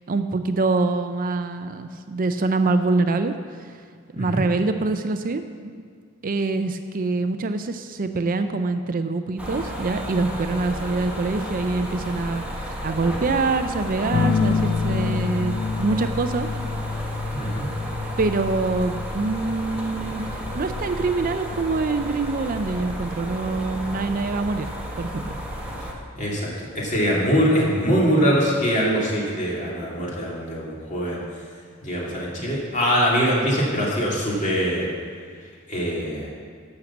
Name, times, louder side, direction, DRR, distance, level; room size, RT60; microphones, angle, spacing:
voice 1, 0.1-3.8 4.1-5.7 6.2-16.5 18.2-24.7 25.0-25.4, right 3 dB, 45° right, 8 dB, 0.5 m, -25 dB
sound 1, 9.4-25.9, equal, 5° right, 1.4 m, -33 dB
sound 2, 14.1-23.2 24.6-25.2, left 5 dB, 55° left, 0.5 m, -29 dB
voice 2, 17.3-17.7 26.2-31.2 31.8-34.9 35.7-36.3, equal, 35° left, -4 dB, 2.8 m, -23 dB
12.0 x 6.5 x 7.2 m, 2.1 s
head